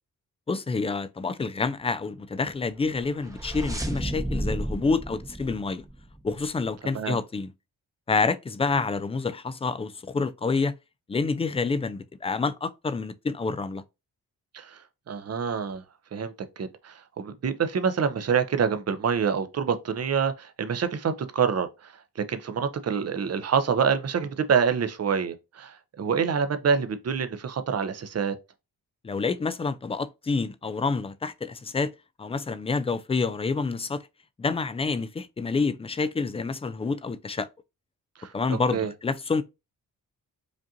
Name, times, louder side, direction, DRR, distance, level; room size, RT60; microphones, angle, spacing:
voice 1, 0.5-5.8 6.2-7.5 8.1-10.8 11.1-13.8 29.0-31.9 32.2-34.0 34.4-37.5 38.3-39.4, left 4 dB, 15° left, 0.3 m, -28 dB
sound 1, 2.8-6.5, right 1 dB, 10° right, 0.8 m, -33 dB
voice 2, 15.1-15.8 16.1-21.9 22.3-28.3 38.2-38.3 38.7-38.9, right 6 dB, 40° right, 0.6 m, -26 dB
5.1 x 2.5 x 2.7 m
cardioid pair, 70°, 37 cm